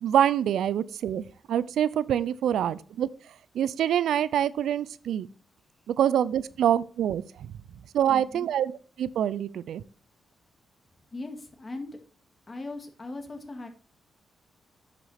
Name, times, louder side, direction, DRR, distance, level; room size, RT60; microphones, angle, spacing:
voice 1, 0.0-3.1 3.5-5.3 5.9-7.5 7.9-8.7 9.0-9.8, right 10 dB, 80° right, 18 dB, 0.4 m, -25 dB
voice 2, 8.1-8.5 11.1-12.0 12.5-13.7, left 2 dB, 30° left, 6 dB, 1.9 m, -39 dB
9.5 x 6.1 x 4.2 m, 0.40 s
cardioid pair, 65°, 0 cm